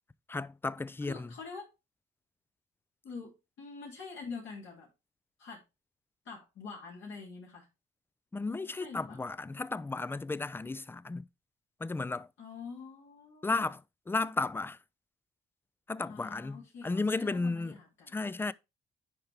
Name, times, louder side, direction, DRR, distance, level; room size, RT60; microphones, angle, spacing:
voice 1, 0.3-1.3 8.3-11.3 11.8-12.3 13.4-13.8 14.1-14.8 15.9-17.7 18.1-18.5, left 3 dB, 10° left, 0.3 m, -34 dB
voice 2, 1.0-1.7 3.0-4.9 5.4-5.6 6.2-7.7 8.7-9.2 12.4-13.7 16.1-18.2, left 4 dB, 75° left, 3.2 m, -45 dB
10.5 x 4.5 x 3.4 m
cardioid pair, 90°, 20 cm